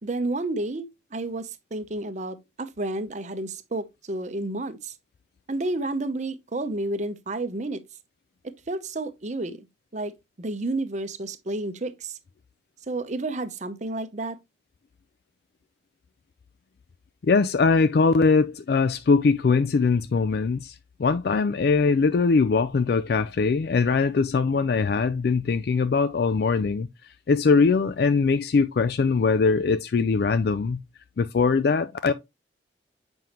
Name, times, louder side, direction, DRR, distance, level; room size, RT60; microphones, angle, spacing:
voice 1, 0.0-4.9 5.5-7.8 8.4-9.7 9.9-10.1 10.4-12.2 12.9-14.4, right 2 dB, 40° right, 0.7 m, -31 dB
voice 2, 17.2-26.9 27.3-30.8 31.2-32.1, left 4 dB, 55° left, 0.4 m, -21 dB
7.6 x 5.3 x 2.9 m
head